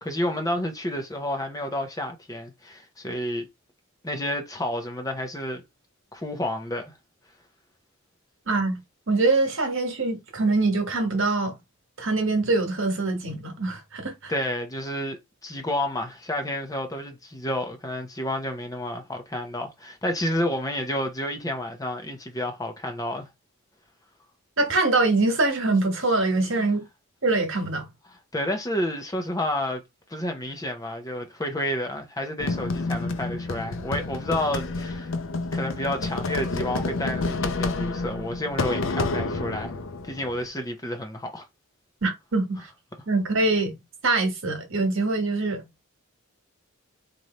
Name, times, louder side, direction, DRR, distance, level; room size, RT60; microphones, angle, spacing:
voice 1, 0.0-3.5 4.0-5.6 6.1-6.9 14.3-23.3 26.5-26.7 28.1-29.8 30.1-35.1 35.5-39.8 40.0-41.5, left 1 dB, 15° left, 0.7 m, -30 dB
voice 2, 8.5-8.8 9.1-11.5 12.0-14.3 24.6-26.8 27.2-27.9 42.0-42.7 43.1-43.7 44.0-45.6, right 3 dB, 60° right, 1.4 m, -24 dB
sound 1, 32.4-40.5, left 3 dB, 60° left, 0.5 m, -29 dB
3.2 x 2.6 x 4.2 m
head